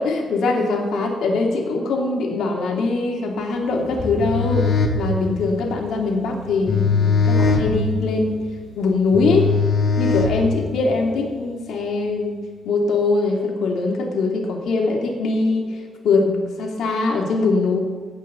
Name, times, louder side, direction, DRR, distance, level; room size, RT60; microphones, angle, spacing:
voice 1, 0.0-8.5 8.8-9.5 10.0-17.8, left 3 dB, 80° left, 1 dB, 2.5 m, -22 dB
sound 1, 3.9-10.9, left 4 dB, 45° left, 1.6 m, -22 dB
16.5 x 5.7 x 6.8 m, 1.5 s
cardioid pair, 140°, 0 cm